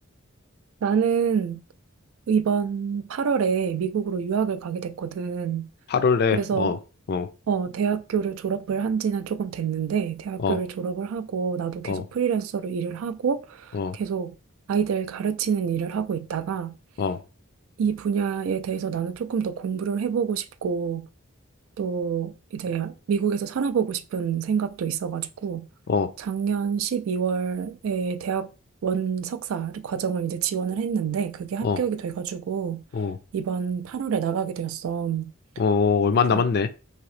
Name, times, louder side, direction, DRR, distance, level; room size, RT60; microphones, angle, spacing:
voice 1, 0.8-1.6 2.3-5.7 6.3-6.8 7.5-14.3 14.7-16.7 17.8-21.1 21.8-25.7 26.2-28.5 28.8-32.8 33.3-35.3 36.3-36.4, right 7 dB, 75° right, 0.3 m, -27 dB
voice 2, 5.9-6.8 7.1-7.3 10.4-10.6 11.8-12.0 13.7-13.9 17.0-17.2 25.9-26.1 31.6-31.8 32.9-33.2 35.6-36.7, left 5 dB, 50° left, 0.4 m, -22 dB
3.0 x 2.7 x 3.1 m
head